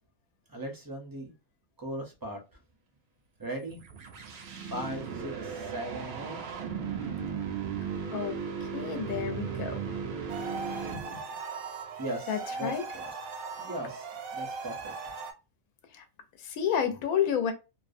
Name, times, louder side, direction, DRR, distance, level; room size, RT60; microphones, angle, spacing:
voice 1, 0.5-1.3 1.8-2.4 3.4-3.8 4.7-6.4 12.0-13.1 13.6-14.0 14.3-15.1, right 1 dB, 35° right, 0.3 m, -38 dB
sound 1, 3.6-11.4, right 6 dB, 65° right, 0.7 m, -36 dB
voice 2, 8.7-10.0 12.3-12.9 15.9-16.0 16.4-17.5, left 8 dB, 85° left, 1.1 m, -30 dB
sound 2, 10.3-15.3, right 4 dB, 85° right, 1.0 m, -39 dB
2.6 x 2.1 x 2.5 m
omnidirectional pair, 1.4 m